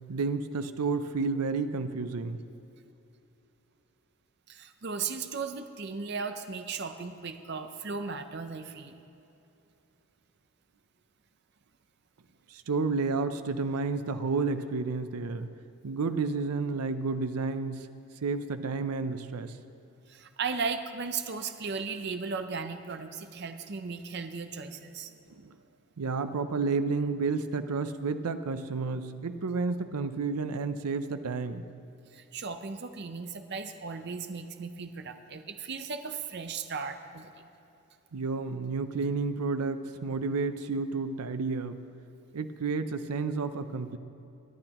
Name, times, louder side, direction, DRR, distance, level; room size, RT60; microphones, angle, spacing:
voice 1, 0.1-2.4 12.5-15.5 15.8-17.9 18.2-19.6 25.3-25.6 26.0-31.7 38.1-41.8 42.3-44.0, right 4 dB, 90° right, 10 dB, 0.6 m, -31 dB
voice 2, 4.5-9.0 20.1-25.1 32.1-37.3, right 5 dB, 50° right, 7 dB, 0.6 m, -36 dB
22.5 x 9.8 x 3.0 m, 2.8 s
head